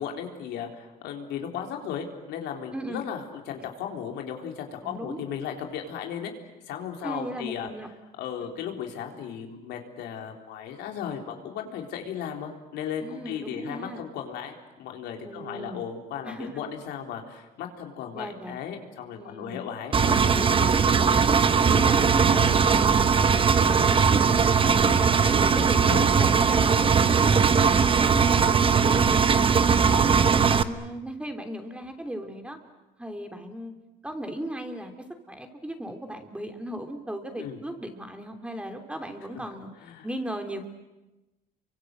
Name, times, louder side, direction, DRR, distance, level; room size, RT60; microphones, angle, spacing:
voice 1, 0.0-6.3 6.7-7.7 8.2-20.8 25.5-26.1 37.4-37.6 39.8-40.1, left 8 dB, 85° left, 3 dB, 3.9 m, -36 dB
voice 2, 2.7-3.0 4.8-5.2 7.0-7.9 8.4-8.5 13.0-14.0 15.2-15.9 16.2-16.6 18.1-18.6 19.1-19.6 21.6-24.9 25.3-28.5 28.8-29.3 29.7-32.6 33.0-33.7 34.0-34.9 35.3-39.7 40.0-40.7, equal, 5° right, 5 dB, 3.2 m, -37 dB
Engine, 19.9-30.6, right 6 dB, 30° right, 1.2 m, -20 dB
29.5 x 24.5 x 8.0 m, 1.0 s
cardioid pair, 110°, 17 cm